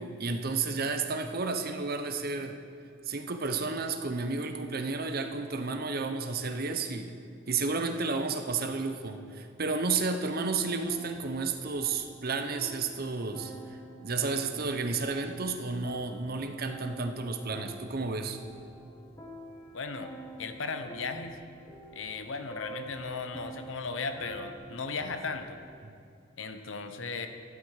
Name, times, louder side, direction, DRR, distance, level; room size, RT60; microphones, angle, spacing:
voice 1, 0.0-2.5 3.1-7.1 7.5-13.5 14.0-18.4 25.8-25.9, right 4 dB, 50° right, 6 dB, 0.8 m, -32 dB
sound 1, 10.4-25.6, right 1 dB, 20° left, 1.0 m, -48 dB
voice 2, 19.7-20.1 20.4-21.4 21.9-25.6 26.4-27.3, left 4 dB, 75° left, 8 dB, 0.9 m, -36 dB
12.0 x 10.5 x 4.9 m, 2.5 s
head